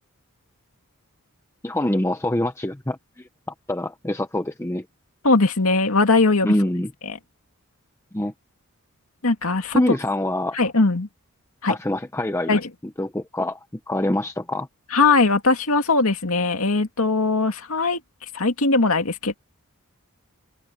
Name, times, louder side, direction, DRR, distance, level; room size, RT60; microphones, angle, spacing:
voice 1, 1.6-3.3 3.7-4.9 6.4-6.9 8.1-8.3 9.7-10.6 11.7-12.6 13.0-13.6 13.9-14.7, left 1 dB, 10° left, 0.7 m, -25 dB
voice 2, 5.2-6.5 7.0-7.2 9.2-9.8 10.5-11.1 11.6-11.7 12.5-12.7 14.9-18.0 18.3-19.4, left 3 dB, 70° left, 2.3 m, -20 dB
open air
head